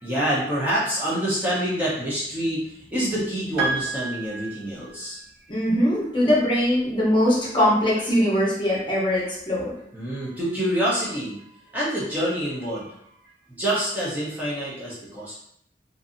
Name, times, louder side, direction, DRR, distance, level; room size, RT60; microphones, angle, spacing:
voice 1, 0.0-5.2 9.9-11.4 11.7-12.9 13.6-15.4, right 1 dB, 10° right, -8 dB, 0.6 m, -26 dB
Piano, 3.6-5.3, right 3 dB, 75° right, 0.7 m, -30 dB
voice 2, 5.5-9.7, left 1 dB, 25° left, -5 dB, 0.8 m, -21 dB
2.6 x 2.6 x 2.5 m, 0.70 s
head